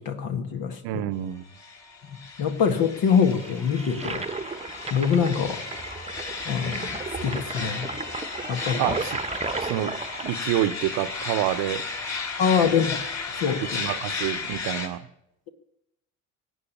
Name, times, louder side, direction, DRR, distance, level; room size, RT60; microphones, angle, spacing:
voice 1, 0.0-0.8 2.1-4.2 4.9-5.6 6.5-7.9 8.5-9.0 12.4-13.0 13.4-13.6, left 7 dB, 60° left, 1.8 m, -24 dB
voice 2, 0.8-1.4 8.8-9.2 9.6-11.8 13.6-15.1, right 13 dB, 65° right, 1.0 m, -28 dB
sound 1, 1.5-14.9, left 4 dB, 45° left, 3.9 m, -34 dB
Toilet flush, 3.1-12.2, right 4 dB, 15° right, 1.1 m, -35 dB
18.5 x 8.6 x 8.5 m
hypercardioid pair, 60°, 40 cm